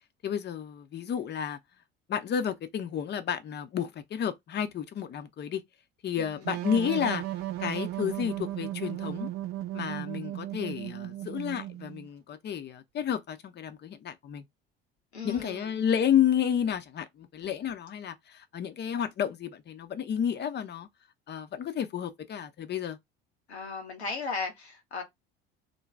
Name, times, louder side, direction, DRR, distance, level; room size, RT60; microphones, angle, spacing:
voice 1, 0.2-1.6 2.1-5.6 6.0-7.2 7.6-9.3 9.7-14.4 15.2-20.9 21.3-23.0, left 9 dB, 35° left, 0.6 m, -31 dB
voice 2, 6.2-6.5 15.1-15.8 23.5-25.0, left 4 dB, 90° left, 0.9 m, -36 dB
sound 1, 6.4-12.1, right 14 dB, 45° right, 0.6 m, -35 dB
2.6 x 2.2 x 3.2 m
hypercardioid pair, 65°, 31 cm